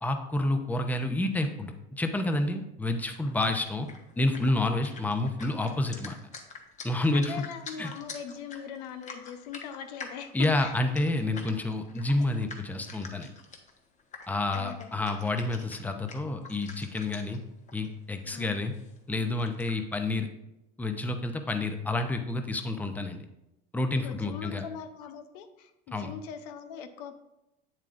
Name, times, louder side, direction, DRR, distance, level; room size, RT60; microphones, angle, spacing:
voice 1, 0.0-3.9 4.2-6.2 6.8-7.4 7.8-7.9 10.3-13.3 14.3-17.4 17.7-18.7 19.1-20.3 20.8-23.2 23.7-24.6 25.9-26.1, left 2 dB, 10° left, 6 dB, 0.7 m, -29 dB
sound 1, 3.0-17.4 17.7-17.9 18.1-19.0 19.4-19.8, left 4 dB, 35° left, 1.1 m, -47 dB
voice 2, 7.1-10.8 14.5-14.9 18.3-18.6 24.0-27.2, left 7 dB, 85° left, 8 dB, 0.8 m, -41 dB
8.2 x 7.4 x 2.5 m, 0.90 s
supercardioid pair, 115°, 21 cm